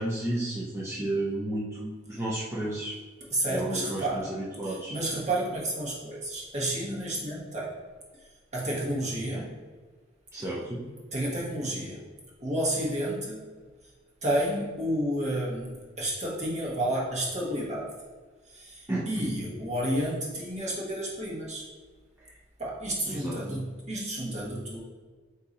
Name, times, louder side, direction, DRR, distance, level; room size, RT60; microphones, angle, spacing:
voice 1, 0.0-2.9 3.5-4.9 10.3-10.8 18.9-19.1 22.2-22.3 23.1-23.4, right 1 dB, 15° right, -6 dB, 0.5 m, -32 dB
voice 2, 3.3-4.3 4.6-7.8 8.5-9.5 11.1-12.0 12.4-13.4 14.2-17.9 18.5-21.7 22.6-24.8, right 1 dB, 35° right, -4 dB, 1.1 m, -31 dB
3.9 x 2.6 x 4.0 m, 1.4 s
head